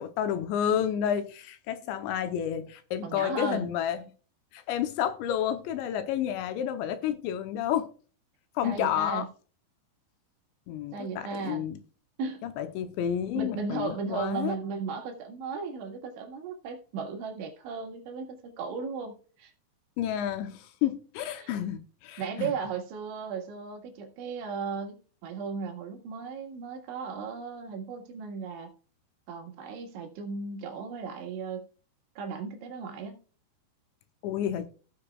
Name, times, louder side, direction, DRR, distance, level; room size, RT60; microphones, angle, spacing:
voice 1, 0.0-4.1 4.5-7.9 8.6-9.3 10.7-11.8 12.4-14.6 20.0-22.5 34.2-34.7, left 10 dB, 80° left, 2.9 m, -30 dB
voice 2, 3.0-3.7 8.6-9.3 10.9-11.6 12.2-12.5 13.3-19.5 21.4-21.5 22.2-28.7 29.3-31.6 32.2-33.2, right 5 dB, 75° right, 4.0 m, -36 dB
17.0 x 6.9 x 2.3 m
omnidirectional pair, 5.5 m